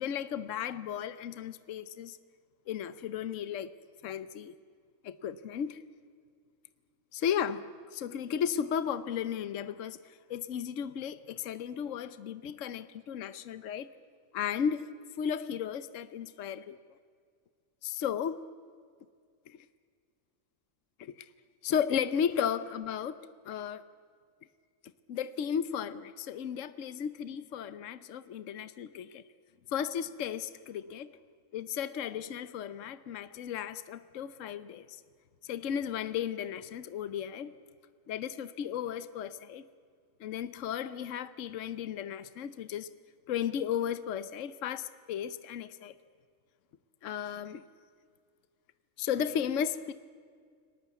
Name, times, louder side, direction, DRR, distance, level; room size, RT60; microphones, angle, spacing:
voice 1, 0.0-2.2 2.7-3.7 4.0-4.5 5.0-5.8 7.1-13.9 14.3-14.9 15.2-16.8 17.8-18.5 19.5-19.6 21.0-21.3 21.6-23.8 25.1-29.2 29.7-31.2 31.5-35.0 35.4-37.6 38.1-39.6 40.2-42.9 43.3-45.9 47.0-47.6 49.0-49.9, left 8 dB, 70° left, 14 dB, 1.2 m, -35 dB
30.0 x 19.0 x 8.2 m, 2.1 s
omnidirectional pair, 1.4 m